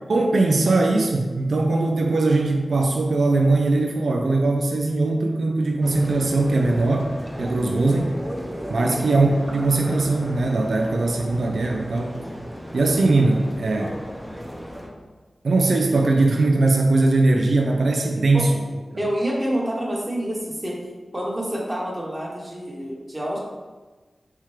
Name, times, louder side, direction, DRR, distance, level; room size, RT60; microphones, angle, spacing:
voice 1, 0.1-7.1 7.4-8.1 8.7-12.2 12.7-13.9 15.4-18.5, right 2 dB, 80° right, 2 dB, 0.4 m, -20 dB
sound 1, 5.8-14.9, equal, 5° right, 0.7 m, -35 dB
voice 2, 8.8-9.1 18.3-18.5 18.9-20.8 21.1-23.4, right 1 dB, 25° right, -3 dB, 1.1 m, -28 dB
4.3 x 3.6 x 3.2 m, 1.3 s
cardioid pair, 55°, 0 cm